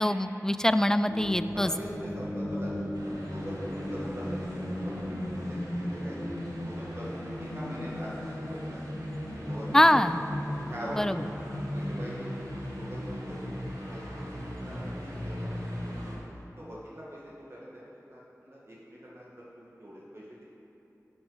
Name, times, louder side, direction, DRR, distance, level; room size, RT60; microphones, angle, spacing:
voice 1, 0.0-1.7 9.7-10.2 11.0-11.2, left 1 dB, 10° left, 12 dB, 0.4 m, -23 dB
sound 1, 1.1-16.1, equal, 85° left, 2.1 m, -36 dB
voice 2, 1.5-2.7 3.3-8.8 9.4-10.0 10.6-11.2 11.7-12.3 12.8-14.1 14.6-14.9 15.2-15.8 16.6-17.8 18.1-20.4, equal, 45° right, -6 dB, 1.6 m, -43 dB
sound 2, 2.9-16.2, right 1 dB, 80° right, 2.1 m, -48 dB
12.5 x 6.3 x 5.5 m, 2.9 s
wide cardioid pair, 55°, 6 cm